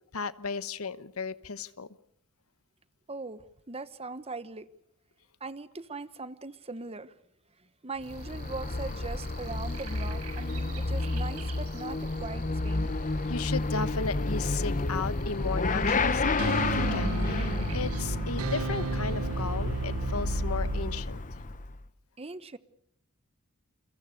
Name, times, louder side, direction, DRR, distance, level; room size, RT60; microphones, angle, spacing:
voice 1, 0.1-1.9 13.3-21.2, left 4 dB, 70° left, 15 dB, 1.1 m, -35 dB
voice 2, 3.1-4.7 5.4-7.2 7.8-12.9 22.2-22.6, right 3 dB, 30° right, 14 dB, 1.1 m, -40 dB
Motorcycle / Accelerating revving vroom, 8.0-21.8, left 2 dB, 35° left, 1.1 m, -31 dB
sound 1, 8.0-18.0, right 8 dB, 90° right, 6.6 m, -51 dB
sound 2, 15.9-21.0, right 3 dB, 70° right, 1.0 m, -33 dB
29.0 x 22.5 x 6.7 m, 0.70 s
head